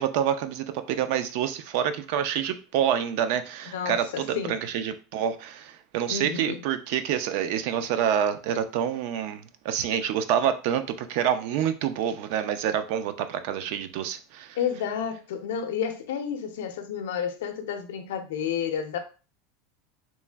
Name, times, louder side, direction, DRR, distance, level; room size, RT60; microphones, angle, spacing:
voice 1, 0.0-14.6, right 9 dB, 60° right, 0.3 m, -27 dB
voice 2, 3.7-4.6 6.1-6.6 14.6-19.0, left 8 dB, 85° left, 0.5 m, -31 dB
3.1 x 2.5 x 2.2 m
supercardioid pair, 140°, 0 cm